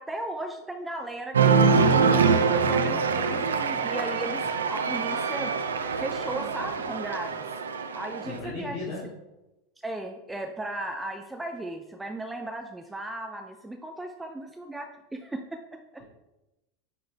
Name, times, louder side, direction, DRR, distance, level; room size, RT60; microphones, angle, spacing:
voice 1, 0.0-1.6 1.9-5.5 5.9-7.5 7.9-8.8 9.8-16.0, right 1 dB, 10° right, 4 dB, 0.5 m, -36 dB
Cheering, 1.3-8.4, right 5 dB, 75° right, 0.4 m, -24 dB
voice 2, 8.2-9.2, left 3 dB, 45° left, -9 dB, 2.3 m, -36 dB
9.5 x 3.7 x 3.4 m, 1.0 s
figure-of-eight pair, 80°, 0 cm